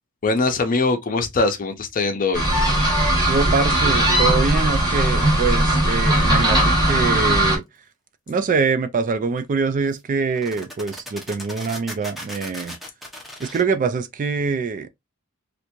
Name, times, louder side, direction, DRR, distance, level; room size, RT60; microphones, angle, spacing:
voice 1, 0.2-2.4, left 3 dB, 40° left, 0.6 m, -21 dB
sound 1, 2.3-7.6, right 1 dB, 20° right, 1.4 m, -18 dB
voice 2, 3.1-7.6 8.3-12.8 13.4-14.9, right 5 dB, 35° right, 0.3 m, -24 dB
sound 2, 5.9-6.2 9.4-9.5 9.9-10.0 10.3-13.6, equal, ahead, 0.8 m, -37 dB
3.3 x 2.5 x 2.9 m
head